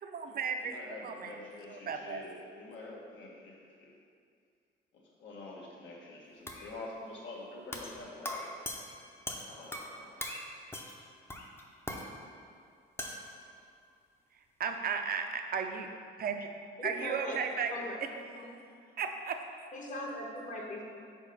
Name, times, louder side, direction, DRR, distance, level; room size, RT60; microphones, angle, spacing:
voice 1, 0.0-1.4 1.7-2.2 14.3-15.9 16.2-16.5 16.8-17.7 18.0-18.1 19.0-19.4, right 6 dB, 50° right, 5 dB, 0.6 m, -35 dB
voice 2, 0.6-3.9 4.9-8.5 9.5-10.4, left 2 dB, 70° left, -3 dB, 1.3 m, -47 dB
sound 1, 6.5-6.7 7.7-8.0 8.3-10.0 10.2-10.4 10.7-11.0 11.3-12.1 13.0-13.3, left 1 dB, 10° left, 0.7 m, -40 dB
voice 3, 16.8-17.4 17.7-18.0 18.4-18.5 19.7-20.8, left 1 dB, 40° left, -1 dB, 1.1 m, -40 dB
5.2 x 3.9 x 5.2 m, 2.3 s
cardioid pair, 90°, 20 cm